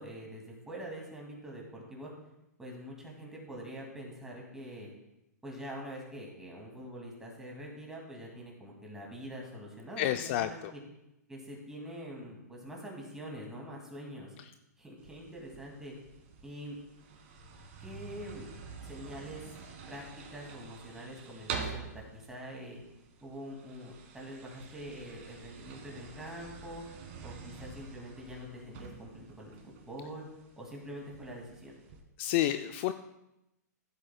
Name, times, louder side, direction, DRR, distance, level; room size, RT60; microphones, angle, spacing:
voice 1, 0.0-2.1 2.6-4.9 5.4-10.8 11.3-14.3 14.8-15.9 16.4-16.8 17.8-18.5 18.8-19.4 19.9-20.0 20.3-22.8 23.2-26.8 27.2-30.3 30.6-31.8, equal, 5° right, -2 dB, 2.2 m, -45 dB
voice 2, 10.0-10.7 32.2-32.9, left 12 dB, 40° left, 10 dB, 0.4 m, -30 dB
sound 1, 15.0-32.0, right 5 dB, 40° right, 1.7 m, -47 dB
14.5 x 7.6 x 2.2 m, 0.88 s
hypercardioid pair, 135°, 9 cm